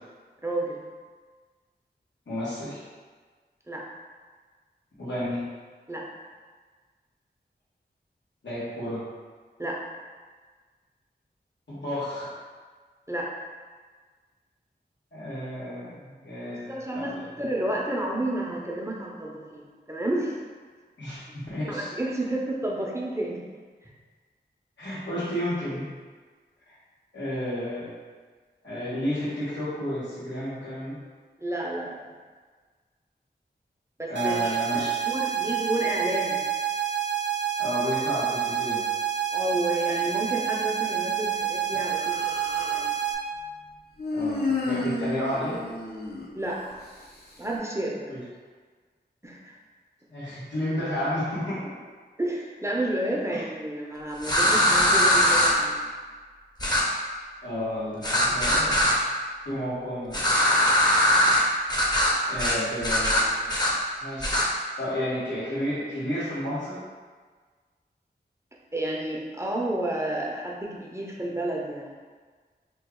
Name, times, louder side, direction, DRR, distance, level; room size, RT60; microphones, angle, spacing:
voice 1, 0.4-0.8 3.7-3.8 5.9-6.1 9.6-9.8 13.1-13.3 16.5-20.4 21.7-23.4 23.8-23.9 31.4-32.1 34.0-34.5 35.0-36.4 39.3-42.9 46.3-46.6 47.4-48.1 49.2-49.5 52.2-55.9 68.7-71.9, right 1 dB, 15° right, -3 dB, 0.6 m, -31 dB
voice 2, 2.3-2.8 5.0-5.5 8.4-9.0 11.7-12.3 15.1-17.1 21.0-21.9 24.8-25.9 26.7-26.8 27.1-27.9 28.6-30.9 34.1-35.0 37.6-38.9 44.1-45.6 48.1-48.2 50.1-51.7 53.3-53.4 57.4-59.0 59.4-60.2 62.3-63.6 64.0-64.4 64.8-66.8, left 1 dB, 90° left, -10 dB, 1.3 m, -31 dB
sound 1, 34.1-43.1, right 9 dB, 75° right, 0.4 m, -28 dB
Human voice, 41.9-42.8 44.0-46.7, left 3 dB, 60° left, 0.7 m, -31 dB
sound 2, 54.2-55.5 56.6-56.8 58.0-58.9 60.1-61.4 61.7-62.1 62.4-62.6 62.8-63.7 64.2-64.4, left 1 dB, 20° left, 0.7 m, -21 dB
2.9 x 2.3 x 3.6 m, 1.5 s
wide cardioid pair, 55°, 18 cm